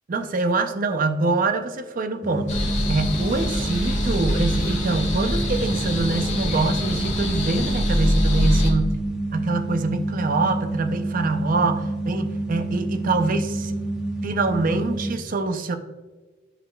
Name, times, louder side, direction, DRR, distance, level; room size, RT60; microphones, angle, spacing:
voice 1, 0.1-9.0 9.3-13.8 14.2-15.8, right 3 dB, 45° right, 9 dB, 0.5 m, -25 dB
sound 1, 2.2-15.1, right 2 dB, 5° right, 1.1 m, -28 dB
sound 2, 2.5-8.7, left 1 dB, 40° left, 1.8 m, -24 dB
11.0 x 5.0 x 2.3 m, 1.3 s
head